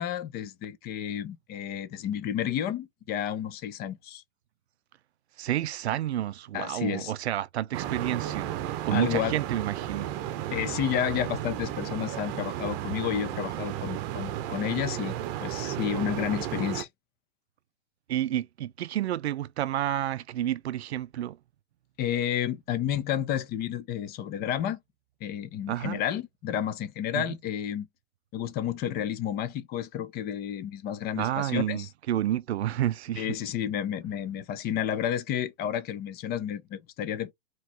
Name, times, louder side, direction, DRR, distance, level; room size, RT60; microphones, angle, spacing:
voice 1, 0.0-4.2 6.5-7.1 8.9-9.4 10.5-16.9 22.0-24.8 25.2-27.9 28.3-31.9 33.2-37.3, left 10 dB, 30° left, 0.7 m, -31 dB
voice 2, 5.4-8.6 8.8-10.1 18.1-21.4 25.7-26.0 27.1-27.2 31.2-33.3, right 12 dB, 80° right, 0.5 m, -30 dB
sound 1, 7.7-16.8, right 12 dB, 40° right, 0.8 m, -34 dB
4.6 x 3.1 x 3.3 m
hypercardioid pair, 115°, 32 cm